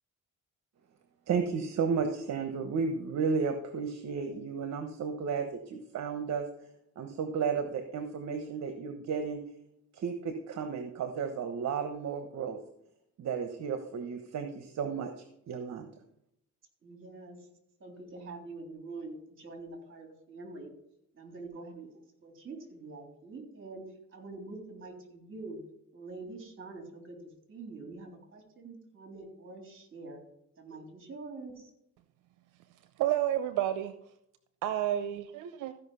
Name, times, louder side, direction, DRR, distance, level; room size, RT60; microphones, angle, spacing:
voice 1, 1.3-6.5 7.0-9.4 9.9-12.6 13.2-15.9, right 5 dB, 65° right, 1.1 m, -33 dB
voice 2, 16.8-17.5 17.8-20.7 21.1-23.8 24.1-25.6 25.9-30.2 30.6-31.7, right 3 dB, 45° right, 3.5 m, -45 dB
voice 3, 33.0-33.9 34.6-35.7, right 12 dB, 85° right, 0.7 m, -30 dB
14.5 x 5.5 x 5.6 m
cardioid pair, 90°, 30 cm